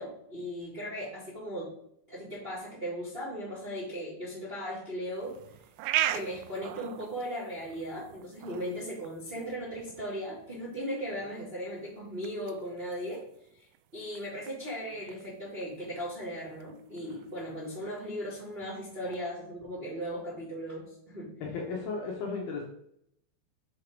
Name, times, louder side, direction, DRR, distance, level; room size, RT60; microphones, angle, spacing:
voice 1, 0.0-1.7 2.1-5.4 6.1-13.2 13.9-21.3, equal, 20° right, -8 dB, 1.7 m, -37 dB
sound 1, 5.1-19.2, right 13 dB, 90° right, 2.9 m, -41 dB
voice 2, 21.4-22.6, left 4 dB, 70° left, -1 dB, 2.5 m, -34 dB
6.9 x 4.7 x 5.0 m, 0.72 s
omnidirectional pair, 5.2 m